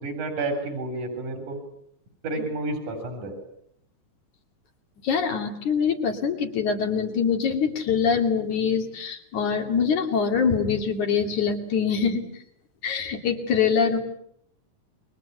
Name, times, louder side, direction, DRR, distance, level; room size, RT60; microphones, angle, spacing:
voice 1, 0.0-1.6 2.2-3.4, right 2 dB, 90° right, 5 dB, 5.3 m, -30 dB
voice 2, 5.0-12.2 12.8-14.0, left 6 dB, 75° left, 4 dB, 4.2 m, -24 dB
29.0 x 23.0 x 8.2 m, 0.70 s
omnidirectional pair, 3.4 m